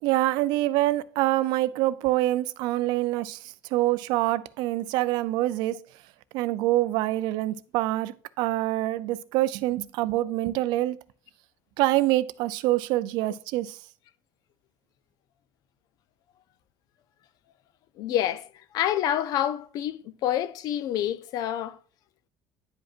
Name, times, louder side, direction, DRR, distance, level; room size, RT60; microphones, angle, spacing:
voice 1, 0.0-5.8 6.3-11.0 11.8-13.8, right 16 dB, 85° right, 0.4 m, -25 dB
voice 2, 18.0-18.5 18.7-21.8, left 11 dB, 60° left, 0.5 m, -27 dB
10.0 x 5.1 x 2.5 m
cardioid pair, 155°, 7 cm